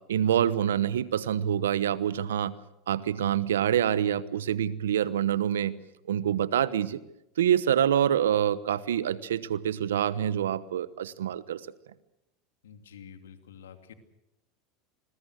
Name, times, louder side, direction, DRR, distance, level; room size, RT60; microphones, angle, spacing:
voice 1, 0.1-2.5 2.9-5.7 6.1-7.0 7.4-11.6, right 10 dB, 85° right, 17 dB, 1.1 m, -26 dB
voice 2, 12.6-13.9, left 7 dB, 90° left, 7 dB, 2.7 m, -48 dB
27.0 x 21.5 x 6.4 m, 0.87 s
hypercardioid pair, 95°, 0 cm